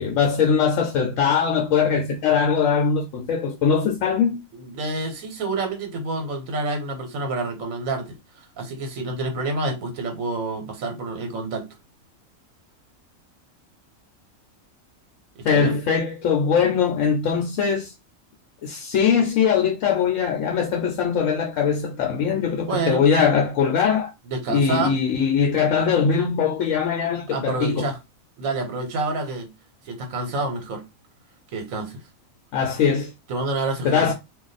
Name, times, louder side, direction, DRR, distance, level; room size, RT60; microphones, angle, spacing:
voice 1, 0.0-4.4 15.4-17.9 18.6-24.1 24.5-27.9 32.5-33.1 33.8-34.1, left 6 dB, 80° left, 1.0 m, -21 dB
voice 2, 4.5-8.2 8.6-11.7 15.3-15.8 22.7-23.0 24.3-24.9 27.1-28.0 28.4-29.5 29.8-30.8 31.5-32.0 33.3-34.1, right 3 dB, 80° right, 1.2 m, -28 dB
2.5 x 2.2 x 4.0 m
omnidirectional pair, 1.4 m